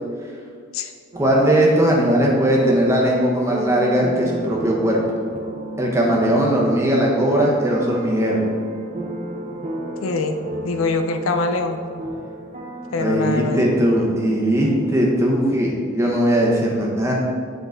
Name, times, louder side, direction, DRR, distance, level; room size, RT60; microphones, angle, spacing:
sound 1, 1.1-14.8, right 1 dB, 35° right, 0.7 m, -33 dB
voice 1, 1.2-5.0 5.8-8.4 13.0-17.1, right 1 dB, 15° right, -3 dB, 1.0 m, -19 dB
voice 2, 10.0-10.4 10.6-11.8 12.9-13.6, left 3 dB, 80° left, 7 dB, 0.5 m, -23 dB
9.6 x 3.8 x 3.9 m, 2.1 s
head